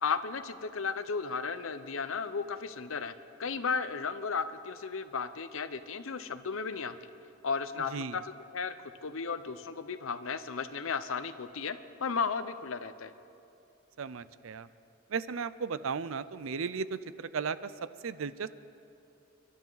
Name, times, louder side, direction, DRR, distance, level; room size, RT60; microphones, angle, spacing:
voice 1, 0.0-3.1 3.4-6.9 7.4-8.2 8.5-13.1, left 5 dB, 90° left, 11 dB, 0.8 m, -34 dB
voice 2, 14.0-14.7 15.1-17.7 18.0-18.5, right 5 dB, 85° right, 15 dB, 0.5 m, -35 dB
30.0 x 12.0 x 4.0 m, 2.7 s
head